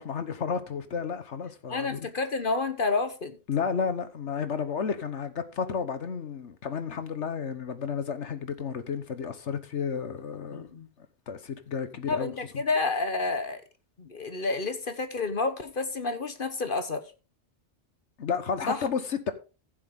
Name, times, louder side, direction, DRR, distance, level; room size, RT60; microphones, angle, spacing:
voice 1, 0.0-2.0 3.5-10.7 11.0-12.3 18.2-19.3, left 6 dB, 75° left, 1.4 m, -32 dB
voice 2, 1.7-3.4 10.5-10.9 12.1-13.6 14.0-17.0 18.7-18.8, left 3 dB, 50° left, 1.2 m, -29 dB
15.0 x 7.7 x 3.7 m
omnidirectional pair, 1.2 m